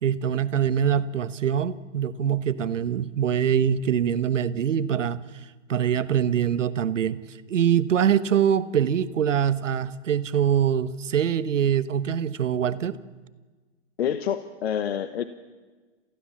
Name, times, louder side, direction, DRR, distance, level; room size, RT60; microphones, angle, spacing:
voice 1, 0.0-5.2 5.7-7.2 7.5-13.0, right 9 dB, 85° right, 14 dB, 1.1 m, -24 dB
voice 2, 14.0-15.2, left 9 dB, 55° left, 11 dB, 1.1 m, -27 dB
30.0 x 15.5 x 7.3 m, 1.4 s
hypercardioid pair, 155°, 36 cm